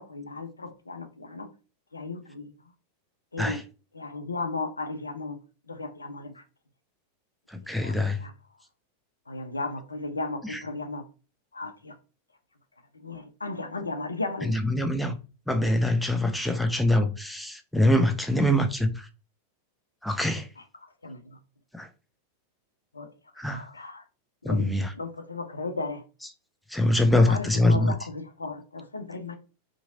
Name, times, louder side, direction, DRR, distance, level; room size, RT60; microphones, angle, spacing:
voice 1, 0.0-1.5 1.9-2.5 3.3-3.6 3.9-5.4 5.7-6.4 7.8-8.3 9.3-11.0 11.5-11.9 12.9-14.6 21.0-21.4 22.9-23.1 23.5-24.0 24.4-24.7 24.9-26.0 27.0-29.4, left 3 dB, 80° left, 0.4 m, -35 dB
voice 2, 7.5-8.2 10.4-10.6 14.4-15.2 15.5-19.1 20.0-20.5 21.7-21.9 23.4-23.6 24.4-24.9 26.7-27.9, left 1 dB, ahead, 0.4 m, -24 dB
2.7 x 2.5 x 2.7 m
figure-of-eight pair, 90°, 0 cm